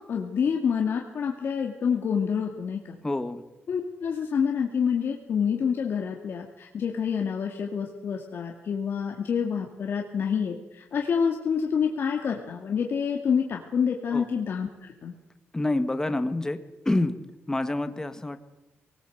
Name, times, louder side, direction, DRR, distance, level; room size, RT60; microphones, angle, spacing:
voice 1, 0.0-3.0 3.7-14.7 15.0-15.1, left 6 dB, 60° left, 1 dB, 2.3 m, -27 dB
voice 2, 3.0-3.4 14.1-14.3 15.5-16.6 16.8-17.2 17.5-18.4, left 2 dB, 15° left, 10 dB, 1.6 m, -27 dB
24.0 x 19.0 x 8.0 m, 0.99 s
wide cardioid pair, 135°, 4 cm